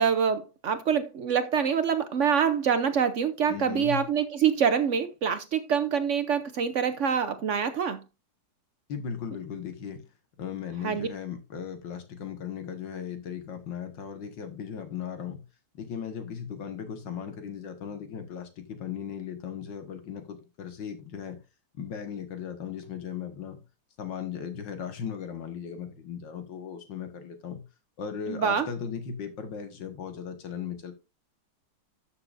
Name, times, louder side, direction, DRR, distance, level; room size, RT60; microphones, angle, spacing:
voice 1, 0.0-8.0 10.8-11.1 28.3-28.7, right 7 dB, 65° right, 0.7 m, -25 dB
voice 2, 3.5-4.0 8.9-10.0 10.4-15.4 15.7-21.4 21.8-23.6 24.0-27.6 28.0-30.9, left 7 dB, 80° left, 2.1 m, -37 dB
12.5 x 6.8 x 2.6 m
omnidirectional pair, 2.0 m